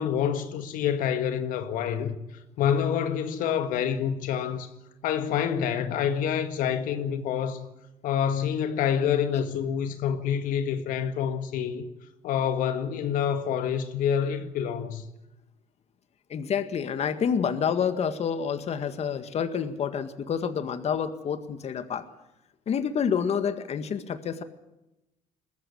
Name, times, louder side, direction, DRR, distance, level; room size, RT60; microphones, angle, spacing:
voice 1, 0.0-2.2 2.6-4.7 5.0-7.7 8.0-11.8 12.2-15.0, left 8 dB, 75° left, 1.8 m, -27 dB
voice 2, 16.3-22.0 22.7-24.4, left 7 dB, 50° left, 1.9 m, -28 dB
21.0 x 14.5 x 9.8 m
cardioid pair, 95°, 14 cm